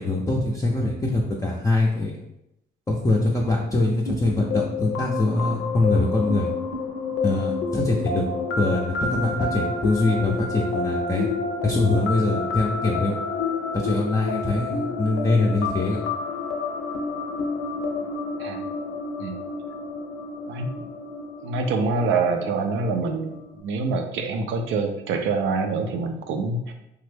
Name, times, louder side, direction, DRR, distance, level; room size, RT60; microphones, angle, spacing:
voice 1, 0.0-2.2 2.9-6.5 7.2-8.2 8.6-11.3 11.6-13.2 13.7-16.0, left 2 dB, 15° left, -2 dB, 0.4 m, -23 dB
sound 1, 4.1-23.6, left 4 dB, 90° left, 0.5 m, -29 dB
voice 2, 21.4-26.7, right 4 dB, 85° right, 5 dB, 0.5 m, -26 dB
3.3 x 2.0 x 3.2 m, 0.84 s
cardioid pair, 90°, 20 cm